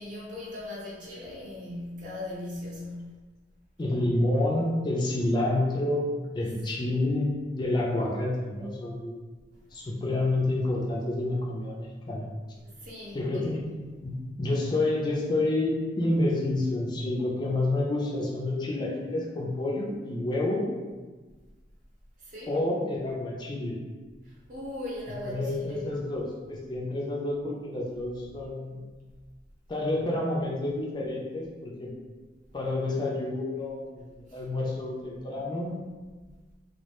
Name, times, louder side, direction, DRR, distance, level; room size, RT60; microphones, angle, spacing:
voice 1, 0.0-3.0 6.4-6.9 9.7-9.8 12.6-13.6 22.2-22.6 24.2-25.9 34.3-34.4, left 1 dB, 45° right, -6 dB, 0.7 m, -39 dB
voice 2, 3.8-6.1 6.3-9.2 9.7-12.3 13.1-13.6 14.0-20.7 22.5-23.8 25.3-28.8 29.7-31.9 32.5-35.8, left 2 dB, 25° left, -3 dB, 0.3 m, -29 dB
2.2 x 2.1 x 2.9 m, 1.3 s
head